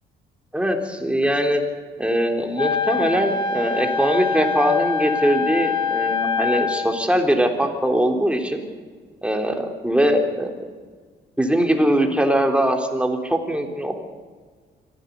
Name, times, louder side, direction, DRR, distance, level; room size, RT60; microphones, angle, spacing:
voice 1, 0.5-1.6 2.0-8.6 9.2-10.5 11.4-13.9, equal, 5° right, 4 dB, 3.7 m, -21 dB
Wind instrument woodwind instrument, 2.6-7.0, left 5 dB, 25° left, 2.7 m, -24 dB
24.5 x 15.5 x 8.4 m, 1.5 s
cardioid pair, 90°, 20 cm